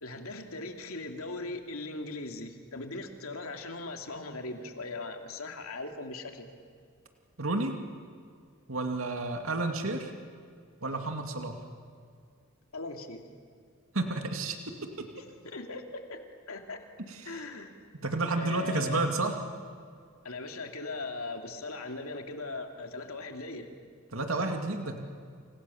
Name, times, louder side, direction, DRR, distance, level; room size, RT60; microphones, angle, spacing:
voice 1, 0.0-6.5 12.7-13.3 15.2-16.8 17.2-17.7 18.4-19.1 20.2-23.7, left 3 dB, 80° left, 4 dB, 2.9 m, -39 dB
voice 2, 7.4-7.7 8.7-10.1 10.8-11.6 13.9-14.6 15.0-15.1 17.1-17.4 18.0-19.3 24.1-25.0, right 2 dB, 75° right, 4 dB, 2.5 m, -31 dB
29.0 x 28.0 x 7.2 m, 2.1 s
head